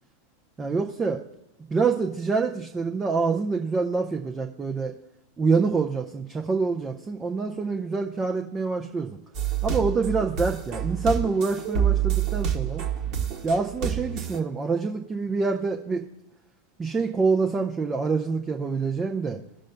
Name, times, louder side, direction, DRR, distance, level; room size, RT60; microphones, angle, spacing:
voice 1, 0.6-1.2 1.7-4.9 5.4-9.2 9.6-12.8 13.4-16.0 16.8-19.4, right 4 dB, 15° right, 1 dB, 0.7 m, -26 dB
sound 1, 9.3-14.4, right 9 dB, 40° right, 1.3 m, -27 dB
18.5 x 6.3 x 2.2 m, 0.87 s
figure-of-eight pair, 90°, 0 cm